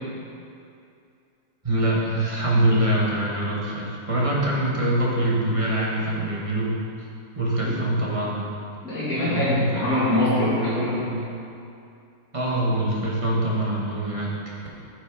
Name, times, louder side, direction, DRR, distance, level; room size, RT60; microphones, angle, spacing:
voice 1, 1.6-6.7 7.3-8.5 9.2-9.8 12.3-14.5, right 1 dB, 20° right, -5 dB, 1.0 m, -24 dB
voice 2, 8.8-11.1, left 1 dB, 50° left, -12 dB, 2.1 m, -23 dB
7.5 x 6.2 x 4.7 m, 2.6 s
omnidirectional pair, 2.1 m